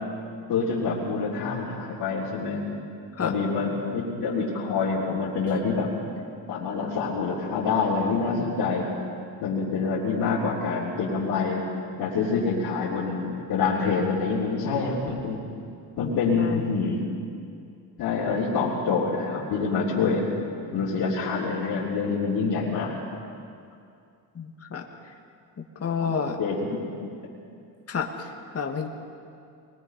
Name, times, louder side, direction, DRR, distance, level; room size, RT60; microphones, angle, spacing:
voice 1, 0.5-2.6 3.2-5.9 6.5-8.9 9.4-11.6 12.0-15.4 16.0-17.0 18.0-20.3 20.7-23.0 26.0-26.1 26.4-27.1, left 4 dB, 75° left, -8 dB, 3.6 m, -26 dB
voice 2, 16.0-16.6 24.4-24.8 25.8-26.4 27.9-28.9, left 6 dB, 35° left, 1 dB, 2.1 m, -30 dB
23.5 x 21.0 x 5.4 m, 2.4 s
cardioid pair, 95°, 39 cm